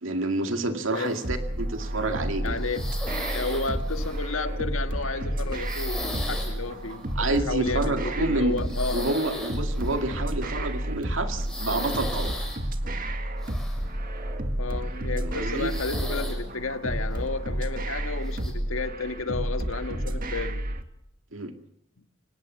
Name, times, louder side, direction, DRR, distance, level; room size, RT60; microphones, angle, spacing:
voice 1, 0.0-2.6 7.2-12.4 15.2-15.7 21.3-21.5, right 2 dB, 70° right, 2.2 m, -28 dB
sound 1, 0.9-1.5 1.9-2.2 2.5-4.4 5.5-6.5 6.8-7.1 8.6-10.1 11.4-12.6 13.4-14.4 14.8-14.9 15.6-16.4 16.9-17.3 18.3-18.5, left 1 dB, 5° left, 6.2 m, -37 dB
sound 2, 1.2-20.8, right 1 dB, 45° right, 1.8 m, -31 dB
voice 2, 2.4-2.8 3.3-9.1 14.6-20.6, left 3 dB, 90° left, 1.7 m, -32 dB
25.0 x 18.5 x 7.7 m
head